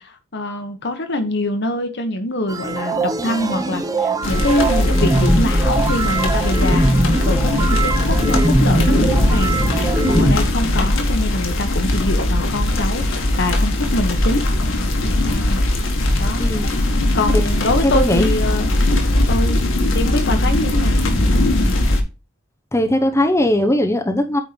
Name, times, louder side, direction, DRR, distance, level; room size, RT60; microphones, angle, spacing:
voice 1, 0.0-9.6 10.1-14.5 15.3-15.6 16.2-16.5 17.1-18.8 19.3-19.6 19.9-21.1, left 1 dB, 60° left, 1.4 m, -24 dB
sound 1, 2.5-10.4, right 2 dB, 20° right, 0.9 m, -21 dB
sound 2, 4.2-22.0, left 1 dB, 75° left, 1.8 m, -19 dB
voice 2, 16.0-16.7 17.3-17.5 17.8-18.3 22.7-24.4, left 1 dB, 15° left, 0.8 m, -19 dB
8.9 x 4.5 x 5.2 m
head